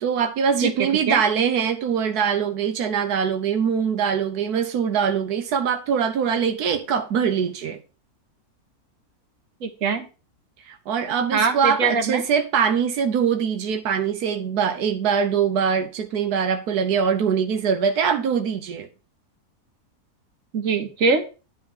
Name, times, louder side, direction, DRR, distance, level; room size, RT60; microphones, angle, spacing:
voice 1, 0.0-7.8 10.7-18.9, right 7 dB, 90° right, 1.4 m, -23 dB
voice 2, 9.6-10.0 11.3-12.2 20.5-21.2, right 4 dB, 60° right, 1.7 m, -22 dB
10.5 x 3.5 x 7.2 m
omnidirectional pair, 1.6 m